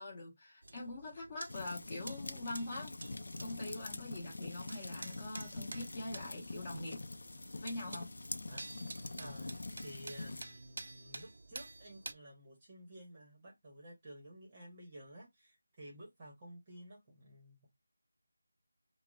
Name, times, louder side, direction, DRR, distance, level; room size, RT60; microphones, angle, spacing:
voice 1, 0.0-2.9 3.4-7.0 7.6-8.1, left 2 dB, 25° left, 1.2 m, -43 dB
sound 1, 0.6-12.1, right 2 dB, 55° right, 0.4 m, -51 dB
sound 2, 1.5-10.4, left 2 dB, 55° left, 0.5 m, -45 dB
voice 2, 9.2-9.5 9.8-17.7, right 1 dB, 20° right, 0.9 m, -53 dB
5.5 x 2.0 x 2.4 m
figure-of-eight pair, 175°, 0 cm